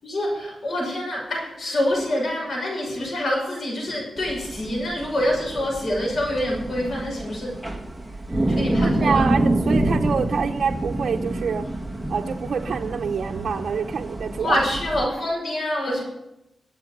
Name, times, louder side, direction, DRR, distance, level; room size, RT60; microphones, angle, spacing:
voice 1, 0.0-7.6 8.5-9.3 14.4-16.0, left 1 dB, 60° left, -3 dB, 6.5 m, -26 dB
sound 1, 4.2-15.1, right 1 dB, ahead, 1.9 m, -27 dB
voice 2, 8.8-11.7 12.1-14.6, right 6 dB, 70° right, 1 dB, 0.7 m, -26 dB
24.0 x 8.1 x 5.3 m, 0.86 s
wide cardioid pair, 120°, 0 cm